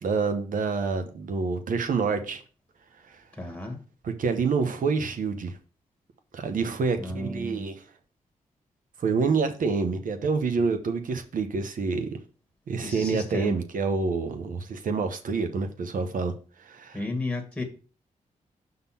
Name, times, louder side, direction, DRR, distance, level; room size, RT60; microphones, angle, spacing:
voice 1, 0.0-2.4 4.0-5.6 6.3-7.8 9.0-12.1 12.7-16.3 16.6-17.0, right 4 dB, 70° right, 1.0 m, -27 dB
voice 2, 3.4-3.8 7.0-7.7 12.8-13.5 16.9-17.6, left 2 dB, 5° left, 1.6 m, -33 dB
5.7 x 3.8 x 5.7 m
cardioid pair, 70°, 14 cm